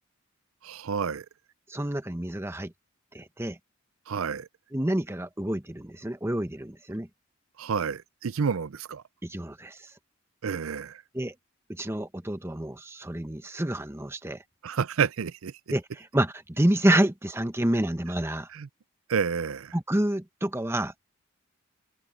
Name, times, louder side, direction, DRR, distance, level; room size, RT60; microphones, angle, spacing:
voice 1, 0.6-1.3 4.1-4.5 7.6-9.0 10.4-11.0 14.6-15.5 18.5-18.7 19.1-19.7, right 6 dB, 75° right, 0.5 m, -29 dB
voice 2, 1.7-2.7 3.1-3.6 4.7-7.1 9.2-9.8 11.1-11.3 11.7-14.4 15.7-18.5 19.7-21.1, right 1 dB, 10° right, 1.0 m, -28 dB
head